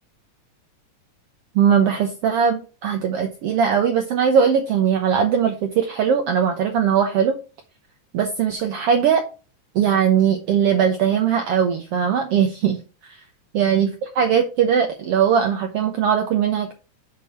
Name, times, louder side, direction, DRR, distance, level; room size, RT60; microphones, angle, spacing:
voice 1, 1.5-7.3 8.1-9.2 9.7-12.8 13.0-13.2 13.5-16.8, right 7 dB, 75° right, 4 dB, 1.3 m, -20 dB
5.9 x 4.8 x 5.7 m, 0.35 s
omnidirectional pair, 3.5 m